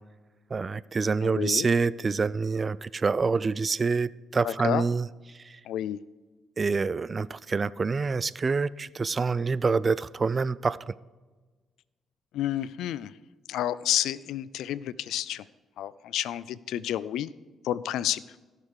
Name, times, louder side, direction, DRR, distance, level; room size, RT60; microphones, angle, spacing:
voice 1, 0.5-5.1 5.5-5.6 6.6-10.9, right 4 dB, 35° right, 0.4 m, -26 dB
voice 2, 1.2-1.7 4.4-4.8 5.6-6.0 12.3-13.2 13.5-15.4 15.8-17.3 17.6-18.2, left 12 dB, 85° left, 0.4 m, -30 dB
15.5 x 6.7 x 4.8 m
cardioid pair, 90°, 0 cm